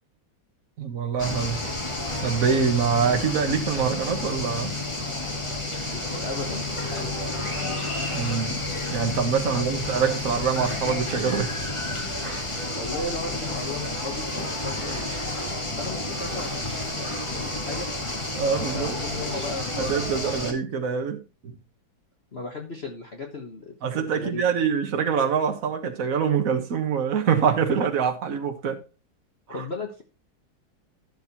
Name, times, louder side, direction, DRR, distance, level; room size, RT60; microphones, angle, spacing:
voice 1, 0.8-1.6 2.2-4.7 8.1-11.6 12.2-12.5 18.3-18.9 19.7-21.6 23.8-28.8, right 6 dB, 50° right, 1.7 m, -25 dB
sound 1, 1.2-20.5, left 2 dB, 15° left, 1.8 m, -30 dB
voice 2, 5.6-7.5 9.4-9.8 12.8-15.1 15.8-17.9 18.7-19.9 22.3-24.4 29.5-30.0, left 2 dB, 35° left, 1.3 m, -36 dB
12.0 x 6.5 x 4.2 m
omnidirectional pair, 2.1 m